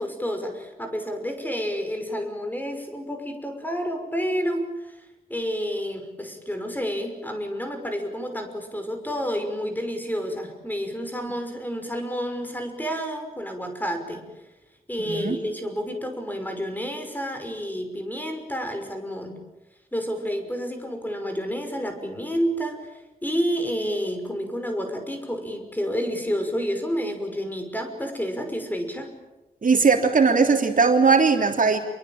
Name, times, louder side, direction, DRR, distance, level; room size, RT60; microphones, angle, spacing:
voice 1, 0.0-5.0 5.3-14.2 14.9-19.4 19.9-29.1, equal, 10° left, 6 dB, 5.8 m, -29 dB
voice 2, 15.0-15.4 29.6-31.8, right 4 dB, 60° right, 3 dB, 3.4 m, -19 dB
27.5 x 23.5 x 8.9 m, 1.0 s
wide cardioid pair, 95°, 15 cm